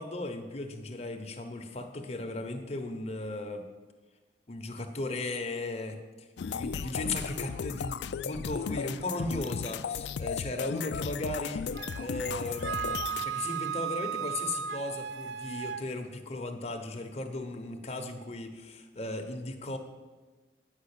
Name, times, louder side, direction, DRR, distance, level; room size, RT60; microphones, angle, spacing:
voice 1, 0.0-3.7 4.5-19.8, left 2 dB, 35° left, 4 dB, 1.0 m, -36 dB
sound 1, 6.4-13.2, left 6 dB, 75° left, 0.3 m, -35 dB
Wind instrument woodwind instrument, 11.7-15.8, right 7 dB, 80° right, 0.4 m, -35 dB
9.7 x 5.7 x 8.4 m, 1.3 s
head